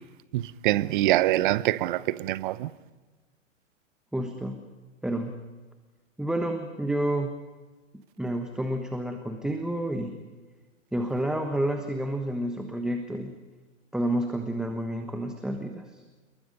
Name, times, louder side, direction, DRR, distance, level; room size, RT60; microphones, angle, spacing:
voice 1, 0.3-2.7, right 16 dB, 40° right, 0.9 m, -25 dB
voice 2, 4.1-4.6 5.0-5.4 6.2-7.4 8.2-10.2 10.9-13.3 13.9-16.0, right 1 dB, ahead, 1.3 m, -29 dB
28.5 x 23.0 x 5.3 m
hypercardioid pair, 120°, 38 cm